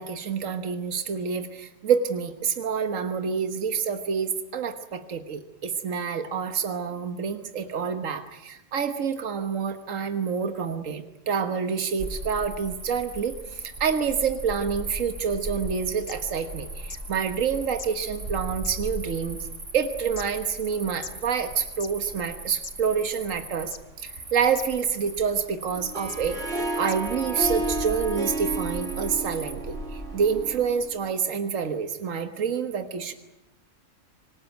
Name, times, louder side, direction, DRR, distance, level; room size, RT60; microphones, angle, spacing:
voice 1, 0.0-19.4 19.7-33.1, right 6 dB, 85° right, 8 dB, 1.6 m, -28 dB
Cricket, 12.0-30.9, right 1 dB, 70° right, 4.6 m, -38 dB
sound 1, 16.1-16.2 16.9-17.0 17.8-17.9 18.6-19.1 19.8-20.3 21.0-21.1 21.7-21.9 22.6-22.7 23.7-24.0 24.5-24.7 25.4-25.5 26.1-26.2 26.9-27.0 27.8-27.9, left 4 dB, 35° left, 1.1 m, -39 dB
Harp, 25.7-31.0, right 2 dB, 55° right, 2.9 m, -32 dB
25.5 x 19.5 x 9.3 m, 0.95 s
omnidirectional pair, 1.3 m